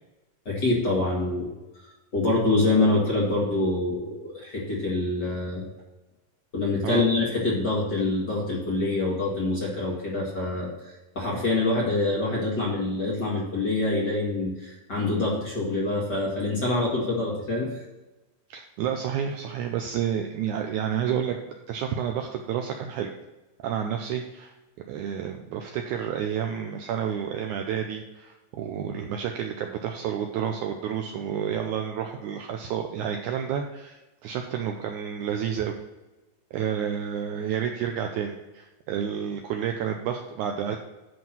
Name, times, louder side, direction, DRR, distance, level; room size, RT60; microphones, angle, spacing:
voice 1, 0.4-1.5 1.8-5.6 6.5-17.7, left 2 dB, 40° left, -4 dB, 1.8 m, -26 dB
voice 2, 18.5-23.1 23.6-24.5 24.9-35.8 36.5-40.8, right 8 dB, 80° right, 4 dB, 1.8 m, -30 dB
10.5 x 3.7 x 5.9 m, 1.1 s
omnidirectional pair, 4.0 m